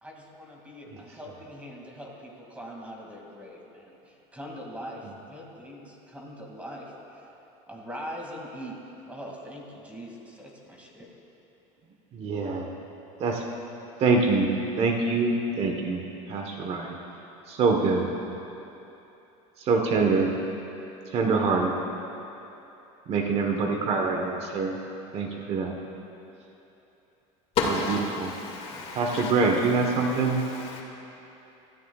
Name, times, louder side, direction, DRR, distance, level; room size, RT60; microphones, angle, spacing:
voice 1, 0.0-7.3 7.7-8.8 9.1-11.1, equal, 10° right, -2 dB, 2.4 m, -42 dB
voice 2, 12.1-12.7 13.2-13.4 14.0-17.0 17.5-18.1 19.6-20.4 21.1-21.8 23.1-24.8 25.1-25.8 28.2-28.3 28.9-30.4, right 4 dB, 40° right, 2 dB, 1.2 m, -25 dB
voice 3, 27.6-30.8, left 4 dB, 40° left, -1 dB, 2.2 m, -32 dB
25.5 x 13.5 x 2.4 m, 3.0 s
cardioid pair, 135°, 16 cm